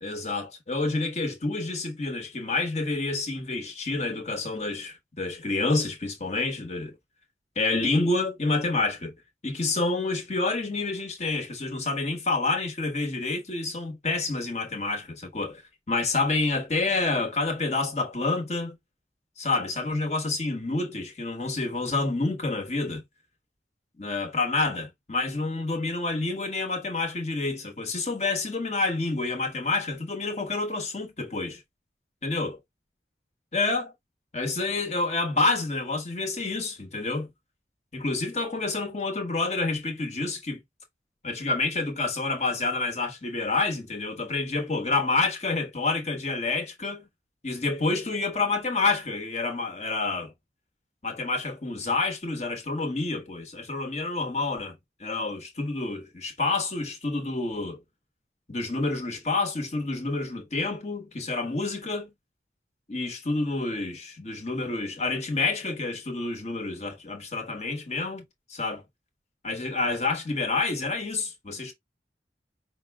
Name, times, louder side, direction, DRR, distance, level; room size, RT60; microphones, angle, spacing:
voice 1, 0.0-6.9 7.6-9.1 9.4-15.6 15.9-18.7 19.4-23.0 24.0-31.6 32.2-32.6 33.5-33.9 34.3-37.3 37.9-40.6 41.2-47.1 47.4-50.3 51.0-57.8 58.5-62.1 62.9-68.2 68.5-68.8 69.4-71.7, left 3 dB, 40° left, 1.1 m, -28 dB
5.3 x 2.1 x 3.4 m
head